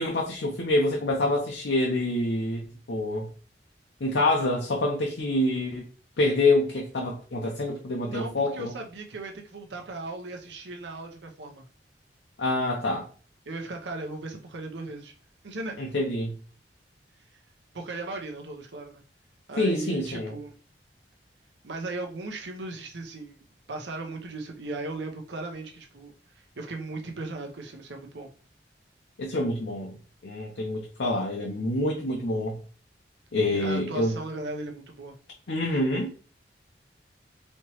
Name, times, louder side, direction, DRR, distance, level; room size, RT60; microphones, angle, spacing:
voice 1, 0.0-3.3 4.0-5.9 6.2-8.7 12.4-13.1 15.8-16.3 19.6-20.3 29.2-30.0 30.2-32.6 33.3-34.1 35.5-36.1, left 2 dB, 80° left, 0.7 m, -26 dB
voice 2, 8.0-11.6 13.5-15.1 15.4-15.8 17.7-19.0 19.5-20.6 21.6-23.4 23.7-26.1 26.6-28.3 33.5-35.2, right 2 dB, 85° right, 0.7 m, -37 dB
4.3 x 3.0 x 3.0 m
head